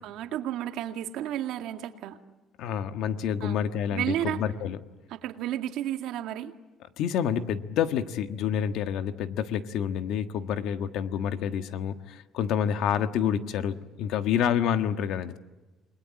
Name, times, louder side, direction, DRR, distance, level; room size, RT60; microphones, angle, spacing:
voice 1, 0.0-2.2 3.4-3.6 3.9-4.4 5.1-6.5, right 12 dB, 70° right, 7 dB, 2.0 m, -32 dB
voice 2, 2.6-4.8 7.0-15.4, left 8 dB, 65° left, 9 dB, 1.5 m, -28 dB
29.5 x 21.0 x 8.6 m, 1.2 s
cardioid pair, 170°, 0 cm